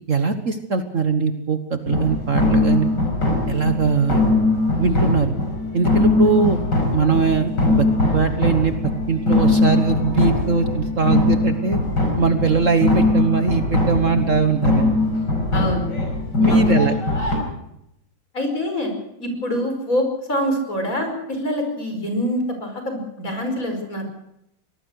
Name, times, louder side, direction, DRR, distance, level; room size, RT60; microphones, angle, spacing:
voice 1, 0.1-2.9 3.5-4.2 4.8-5.3 5.7-6.6 6.9-8.7 9.1-11.8 12.2-14.9 16.4-16.9, right 5 dB, 45° right, 8 dB, 1.6 m, -21 dB
sound 1, 1.9-17.4, left 2 dB, 70° left, 6.0 m, -21 dB
voice 2, 15.5-15.9 16.5-16.8 18.3-18.9 19.2-24.0, equal, 45° left, 4 dB, 5.6 m, -25 dB
24.0 x 19.0 x 6.5 m, 0.81 s
omnidirectional pair, 2.0 m